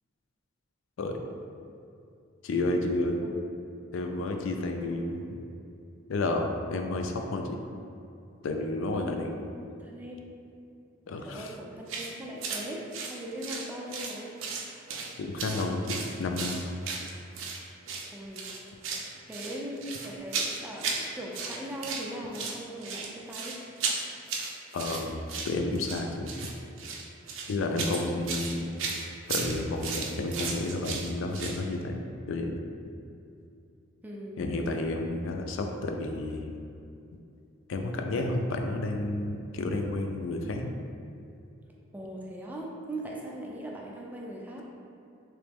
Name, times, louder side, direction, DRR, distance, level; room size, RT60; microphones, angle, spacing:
voice 1, 2.4-3.3 3.9-5.2 6.1-7.6 8.4-9.3 11.1-11.5 15.2-16.6 24.7-26.5 27.5-28.8 29.3-32.0 32.3-32.5 34.4-36.5 37.7-40.7, left 2 dB, 65° left, 3 dB, 0.3 m, -31 dB
voice 2, 9.8-10.2 11.2-14.3 18.1-18.5 19.2-23.6 27.7-28.1 34.0-34.4 41.9-44.6, right 1 dB, 10° right, -3 dB, 0.4 m, -40 dB
sound 1, 11.9-12.1 12.4-12.6 12.9-14.1 14.4-15.1 15.4-17.6 17.9-18.1 18.4-19.1 19.3-21.1 21.3-22.1 22.3-31.6, right 4 dB, 65° right, 0.5 m, -35 dB
3.3 x 3.1 x 3.4 m, 2.6 s
head